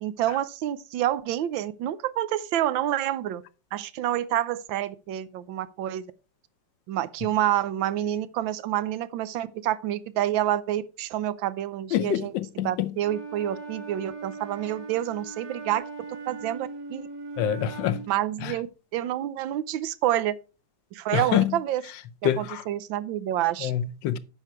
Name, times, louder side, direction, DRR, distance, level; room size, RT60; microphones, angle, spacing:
voice 1, 0.0-3.4 3.7-6.1 6.9-15.9 16.3-17.1 18.1-18.7 18.9-20.4 20.9-21.8 22.2-23.7, right 12 dB, 90° right, 1.4 m, -28 dB
voice 2, 11.9-12.7 17.4-18.0 21.1-21.5 22.2-22.6 23.6-24.2, left 11 dB, 80° left, 1.3 m, -25 dB
Wind instrument woodwind instrument, 13.0-18.1, right 4 dB, 45° right, 2.3 m, -39 dB
9.0 x 5.6 x 4.7 m
omnidirectional pair, 2.0 m